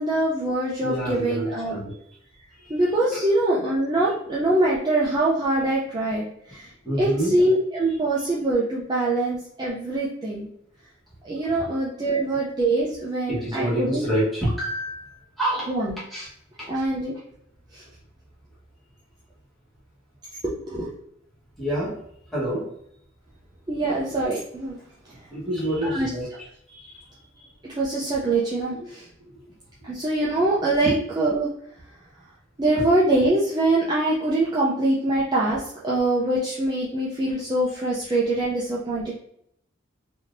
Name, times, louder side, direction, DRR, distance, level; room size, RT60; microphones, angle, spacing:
voice 1, 0.0-1.8 2.7-6.7 7.0-10.5 11.2-14.1 15.7-16.0 16.7-17.1 17.7-17.8 20.6-20.9 23.7-24.8 25.8-26.1 27.7-29.1 29.8-31.5 32.6-39.1, right 2 dB, 20° right, -6 dB, 0.5 m, -24 dB
voice 2, 0.8-2.0 2.6-2.8 3.1-3.2 6.8-7.3 13.3-15.7 16.1-16.3 16.6-16.7 21.6-22.0 22.3-22.7 25.3-26.3 26.7-27.0 28.7-28.8 29.2-29.3 30.8-31.0 32.7-32.8, right 1 dB, ahead, -9 dB, 1.3 m, -27 dB
3.5 x 2.7 x 2.5 m, 0.72 s
head